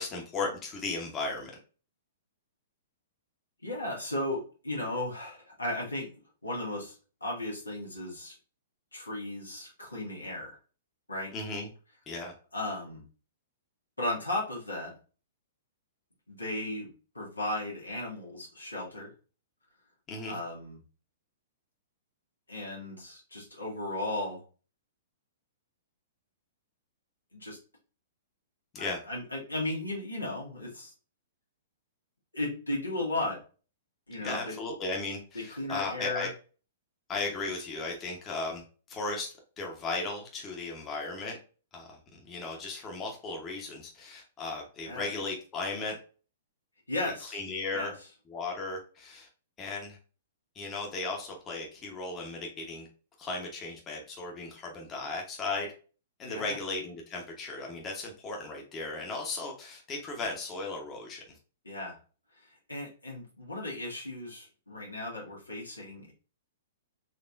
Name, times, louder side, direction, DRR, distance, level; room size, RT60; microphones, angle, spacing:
voice 1, 0.0-1.5 11.3-11.7 12.1-12.3 20.1-20.4 28.7-29.0 34.2-36.3 37.1-41.4 41.7-46.0 47.2-47.9 48.3-49.3 49.6-50.0 50.5-52.9 53.2-55.7 56.2-61.4, left 3 dB, 25° left, 0 dB, 1.1 m, -36 dB
voice 2, 3.6-6.1 6.4-7.0 7.2-8.4 8.9-10.6 11.1-11.3 12.5-13.0 14.0-14.9 16.3-19.1 20.3-20.8 22.5-24.4 27.3-27.6 28.8-30.9 32.3-33.4 34.1-34.6 35.4-36.3 44.8-45.1 46.9-47.4 47.7-47.9 56.3-56.6 61.6-62.0 62.3-66.1, left 1 dB, 90° left, -2 dB, 1.7 m, -35 dB
4.2 x 3.0 x 2.6 m, 0.36 s
figure-of-eight pair, 110°, 0 cm